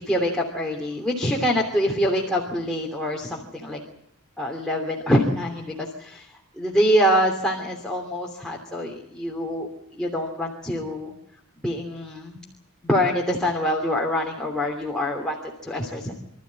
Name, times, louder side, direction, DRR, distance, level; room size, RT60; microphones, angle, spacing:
voice 1, 0.0-3.8 4.4-11.1 11.6-12.4 12.8-15.4 15.6-16.1, equal, 5° left, -2 dB, 3.0 m, -25 dB
26.0 x 14.0 x 9.7 m, 0.75 s
head